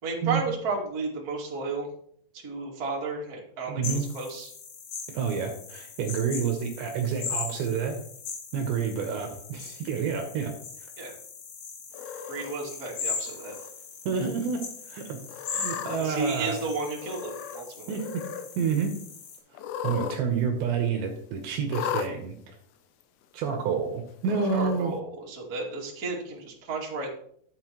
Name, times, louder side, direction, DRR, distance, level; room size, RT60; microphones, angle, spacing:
voice 1, 0.0-1.9 2.4-4.5 11.0-11.1 12.3-13.5 16.0-18.0 24.5-27.1, right 3 dB, 35° right, -4 dB, 1.6 m, -33 dB
voice 2, 3.7-4.1 5.1-8.0 8.5-10.5 14.1-15.2 15.5-16.6 17.9-18.2 18.6-18.9 19.8-22.5 23.3-24.9, right 6 dB, 75° right, 3 dB, 3.0 m, -29 dB
sound 1, 3.8-19.4, left 5 dB, 75° left, 4.3 m, -39 dB
Cat, 11.9-12.5 13.3-13.7 14.1-14.2 15.3-16.0 17.0-17.6 17.9-18.5 19.5-20.2 20.5-20.6 21.7-22.1 23.0-23.1 24.2-24.8, left 9 dB, 90° left, 2.4 m, -35 dB
11.5 x 8.3 x 3.0 m, 0.63 s
omnidirectional pair, 5.8 m